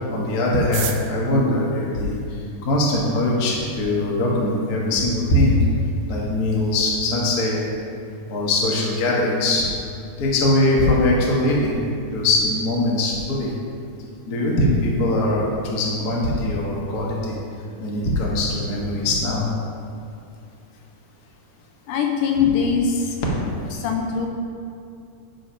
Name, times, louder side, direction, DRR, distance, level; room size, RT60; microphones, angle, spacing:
voice 1, 0.1-2.2 2.6-5.6 6.1-7.6 8.3-9.7 10.2-11.8 12.1-13.5 14.3-15.4 15.7-17.4 17.8-19.5, left 1 dB, 50° left, -4 dB, 1.1 m, -21 dB
sound 1, 0.5-2.8 3.6-3.7 3.9-4.0 4.3-4.8 5.1-5.2 5.4-5.8 6.1-6.3 6.6-6.9, right 10 dB, 85° right, 1.7 m, -34 dB
voice 2, 21.9-23.2 23.7-24.3, left 6 dB, 80° left, 3 dB, 2.0 m, -22 dB
10.0 x 5.1 x 5.1 m, 2.5 s
omnidirectional pair, 4.0 m